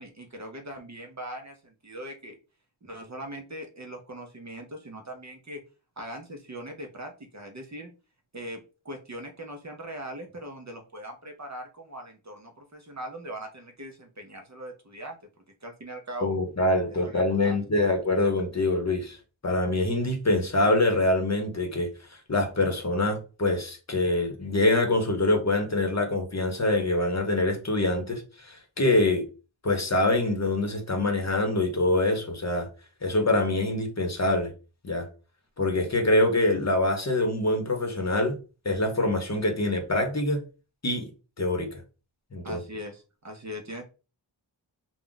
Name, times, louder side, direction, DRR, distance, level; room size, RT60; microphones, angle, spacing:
voice 1, 0.0-2.4 2.8-5.6 6.0-7.9 8.3-15.2 15.6-16.3 16.9-17.6 42.4-43.8, right 1 dB, 35° right, 0.6 m, -40 dB
voice 2, 16.2-19.2 19.4-29.3 29.6-32.7 33.0-34.5 34.8-35.1 35.6-38.4 38.6-40.4 40.8-41.1 41.4-41.8 42.3-42.6, left 2 dB, 35° left, 0.8 m, -25 dB
2.4 x 2.1 x 3.7 m
wide cardioid pair, 70°, 47 cm